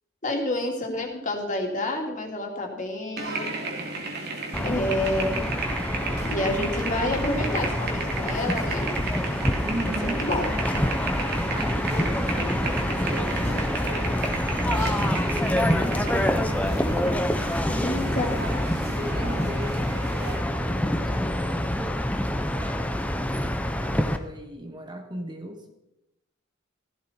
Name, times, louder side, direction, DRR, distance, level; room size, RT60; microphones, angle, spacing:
voice 1, 0.2-3.5 4.6-5.4 6.2-8.9 10.0-10.5 17.7-18.3, left 1 dB, 40° left, 1 dB, 3.1 m, -28 dB
sound 1, 3.2-20.4, right 3 dB, 55° right, 2.7 m, -34 dB
sound 2, 4.5-24.2, left 1 dB, 5° left, 0.9 m, -26 dB
voice 2, 9.6-10.3 11.5-16.9 17.8-18.6 18.9-23.0 23.7-25.7, right 1 dB, 20° right, 4 dB, 1.4 m, -38 dB
16.0 x 14.5 x 4.5 m, 0.91 s
head